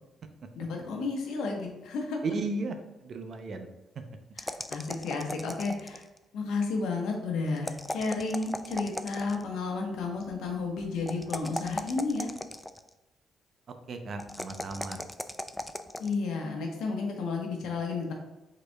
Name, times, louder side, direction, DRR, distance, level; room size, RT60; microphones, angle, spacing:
voice 1, 0.5-2.2 4.4-6.0 6.3-12.3 16.0-18.1, left 4 dB, 85° left, 2 dB, 1.0 m, -32 dB
voice 2, 2.2-3.7 13.9-15.0, right 3 dB, 50° right, 6 dB, 0.6 m, -35 dB
sound 1, 4.4-6.2 7.6-9.5 11.1-12.9 14.2-16.1, left 1 dB, 10° left, 0.3 m, -37 dB
5.1 x 4.1 x 2.3 m, 1.0 s
cardioid pair, 90°, 0 cm